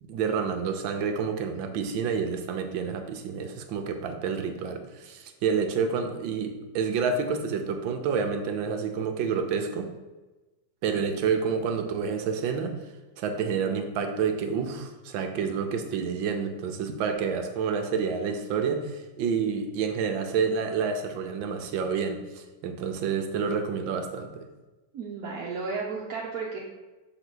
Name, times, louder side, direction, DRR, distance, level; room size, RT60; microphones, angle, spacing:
voice 1, 0.0-9.9 10.8-12.8 13.2-24.5, right 6 dB, 90° right, 6 dB, 1.6 m, -29 dB
voice 2, 24.9-26.6, right 4 dB, 55° right, -3 dB, 1.3 m, -33 dB
6.6 x 4.0 x 6.1 m, 1.2 s
omnidirectional pair, 2.0 m